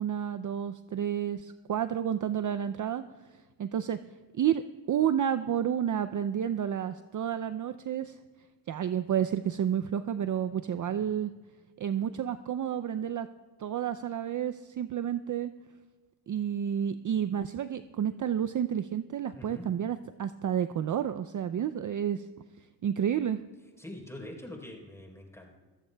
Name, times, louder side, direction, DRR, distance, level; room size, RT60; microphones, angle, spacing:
voice 1, 0.0-3.0 3.6-4.0 4.3-8.2 8.7-11.3 11.8-13.3 13.6-15.5 16.3-22.3 22.8-23.4, right 9 dB, 45° right, 11 dB, 0.5 m, -30 dB
voice 2, 19.3-19.7 23.8-25.6, left 1 dB, 5° left, 0 dB, 3.7 m, -44 dB
22.0 x 14.0 x 2.3 m, 1.3 s
cardioid pair, 60°, 46 cm